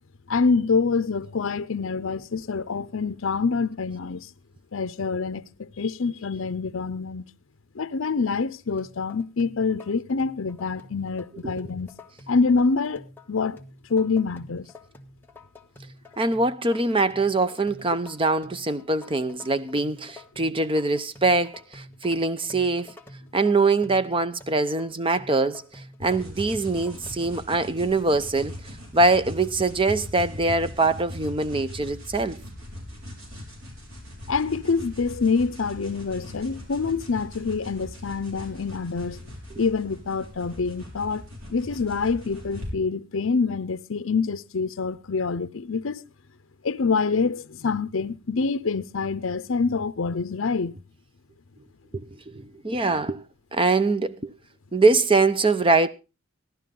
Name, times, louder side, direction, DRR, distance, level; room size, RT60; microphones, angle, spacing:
voice 1, 0.3-4.3 4.7-7.2 7.7-11.9 12.3-13.6 13.9-14.7 34.3-39.2 39.6-41.2 41.5-46.0 46.6-50.8, left 4 dB, 65° left, 0.6 m, -26 dB
sound 1, 8.8-27.4, left 2 dB, 10° left, 1.4 m, -48 dB
voice 2, 16.2-22.9 23.3-28.6 28.9-32.4 39.5-39.6 51.9-53.2 53.5-54.3 54.7-55.9, right 3 dB, 25° right, 0.7 m, -23 dB
sound 2, 26.0-42.7, left 1 dB, 90° right, 5.9 m, -40 dB
16.0 x 11.5 x 3.7 m
head